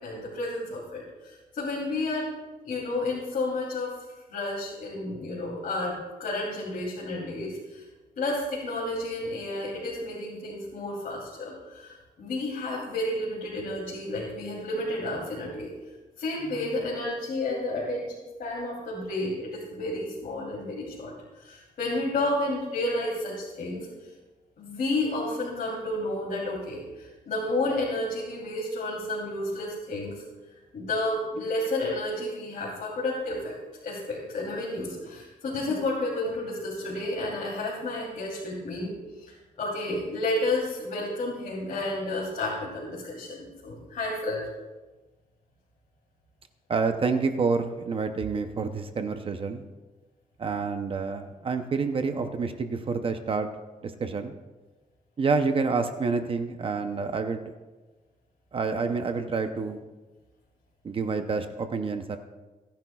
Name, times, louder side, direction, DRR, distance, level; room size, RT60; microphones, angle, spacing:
voice 1, 0.0-2.3 2.6-4.0 4.3-7.8 8.2-15.7 16.2-24.1 24.6-30.2 30.7-33.5 33.8-44.5, left 2 dB, 65° left, -6 dB, 3.1 m, -31 dB
voice 2, 46.7-49.6 50.4-53.5 53.8-54.3 55.2-57.5 58.5-59.8 60.8-62.2, right 4 dB, 35° right, 7 dB, 0.7 m, -28 dB
26.5 x 10.0 x 2.3 m, 1.2 s
wide cardioid pair, 175°, 15 cm